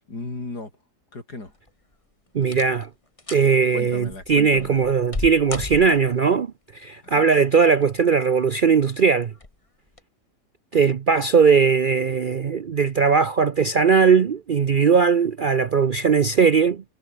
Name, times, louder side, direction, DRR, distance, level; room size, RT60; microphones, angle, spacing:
voice 1, 0.1-0.7 1.1-1.5 3.7-4.8 7.0-7.3, left 2 dB, 60° left, 6.1 m, -35 dB
sound 1, 1.5-1.9 2.4-2.9 3.2-3.5 4.1-6.3 7.5-8.1 8.5-8.6 9.3-9.6 9.9-10.0, left 2 dB, 20° left, 1.7 m, -35 dB
voice 2, 2.3-2.9 3.3-9.3 10.7-16.8, right 5 dB, 85° right, 0.4 m, -19 dB
omnidirectional pair, 1.9 m